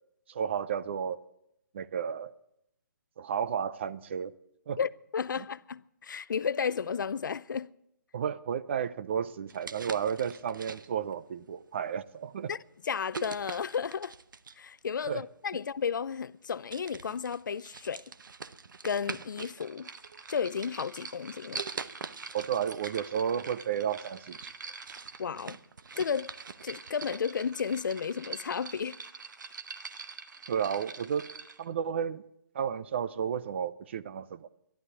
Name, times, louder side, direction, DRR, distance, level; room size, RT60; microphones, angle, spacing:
voice 1, 0.3-1.2 1.7-2.3 3.2-4.3 4.7-4.8 5.4-5.5 8.1-12.5 15.1-15.2 22.3-24.5 30.5-31.3 31.6-32.2 32.5-34.5, right 8 dB, 35° right, 0.5 m, -32 dB
voice 2, 4.8-7.7 12.5-12.6 12.8-14.1 14.6-18.0 18.8-19.9 20.3-21.6 25.2-25.6 26.0-26.3 26.6-29.0, left 6 dB, 75° left, 0.5 m, -33 dB
sound 1, 9.5-11.1 11.9-12.1 13.1-14.7 15.8-15.9 16.3-16.5 16.7-19.6 20.0-20.7 21.6-23.0 23.3-23.4 23.9-27.3, right 5 dB, 85° right, 0.8 m, -43 dB
sound 2, 19.4-31.7, right 5 dB, 70° right, 1.4 m, -45 dB
12.5 x 11.5 x 8.1 m
hypercardioid pair, 165°, 11 cm